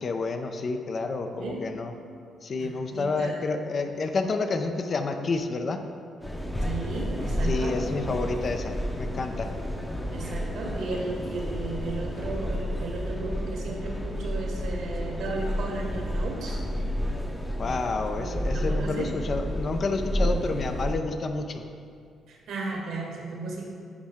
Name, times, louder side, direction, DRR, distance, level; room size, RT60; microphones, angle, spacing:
voice 1, 0.0-1.9 2.4-5.8 7.4-9.6 17.6-21.6, left 3 dB, 45° left, 6 dB, 0.6 m, -29 dB
voice 2, 1.4-1.7 2.6-3.4 6.6-7.8 10.1-16.6 18.1-19.1 20.2-20.3 22.3-23.6, right 3 dB, 80° right, -1 dB, 1.5 m, -35 dB
sound 1, 6.2-20.9, equal, 10° left, 0.8 m, -31 dB
9.7 x 5.2 x 3.6 m, 2.2 s
cardioid pair, 90°, 0 cm